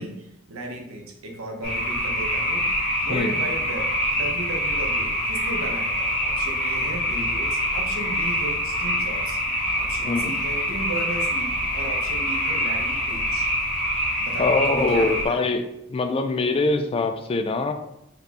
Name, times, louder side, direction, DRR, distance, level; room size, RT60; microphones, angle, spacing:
voice 1, 0.0-9.4 9.7-13.5 14.2-15.4, right 2 dB, 85° right, 2 dB, 0.8 m, -35 dB
sound 1, 1.6-15.2, equal, 45° left, 1.5 m, -25 dB
voice 2, 14.4-17.7, left 3 dB, 25° left, 7 dB, 0.3 m, -23 dB
4.1 x 3.3 x 2.9 m, 0.83 s
head